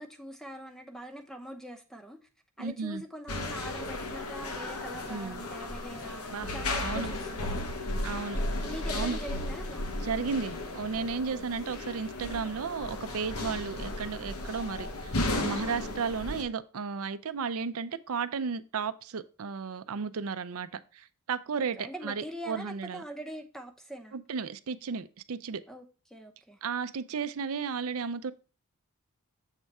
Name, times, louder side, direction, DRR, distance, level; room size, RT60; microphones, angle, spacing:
voice 1, 0.0-2.2 2.6-7.7 8.6-9.9 21.8-24.1 25.7-26.6, equal, ahead, 0.7 m, -43 dB
voice 2, 2.6-3.0 5.1-5.5 6.3-7.1 8.0-8.4 8.9-9.2 10.0-23.0 24.1-25.6 26.6-28.3, right 5 dB, 70° right, 0.5 m, -34 dB
sound 1, 3.3-16.4, left 2 dB, 80° left, 1.2 m, -35 dB
7.3 x 3.5 x 5.3 m
head